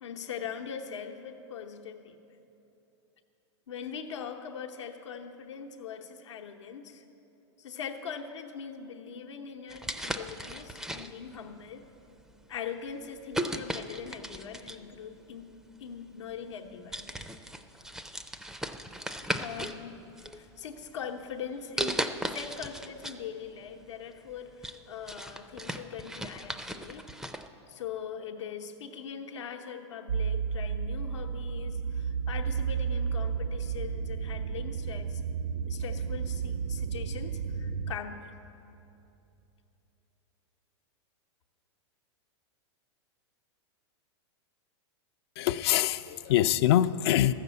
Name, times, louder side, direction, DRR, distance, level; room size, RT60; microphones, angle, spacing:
voice 1, 0.0-2.2 3.7-7.0 7.6-11.8 12.5-17.0 19.4-20.0 20.3-27.2 27.7-35.2 35.7-38.3, left 7 dB, 85° left, 3 dB, 0.9 m, -41 dB
sound 1, 9.7-11.4 12.1-12.3 13.3-14.9 16.0-16.1 16.5-16.7 16.9-19.8 20.2-20.9 21.8-23.2 23.6-23.7 24.2-27.5, right 1 dB, 5° right, 0.4 m, -36 dB
sound 2, 30.1-38.0, right 6 dB, 80° right, 0.4 m, -32 dB
voice 2, 45.4-47.3, left 12 dB, 60° left, 12 dB, 0.4 m, -24 dB
13.5 x 6.7 x 8.1 m, 2.9 s
hypercardioid pair, 130°, 15 cm